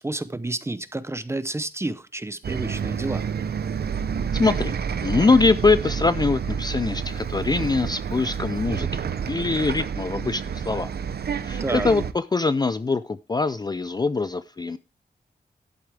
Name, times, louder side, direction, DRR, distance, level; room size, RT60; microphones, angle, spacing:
voice 1, 0.0-3.3 11.6-11.9, right 2 dB, 15° right, 0.7 m, -30 dB
Bus, 2.4-12.1, right 7 dB, 70° right, 0.7 m, -29 dB
voice 2, 4.3-4.7 5.0-10.9 11.4-14.8, left 3 dB, 25° left, 0.4 m, -23 dB
11.5 x 8.4 x 3.4 m
wide cardioid pair, 115°, 17 cm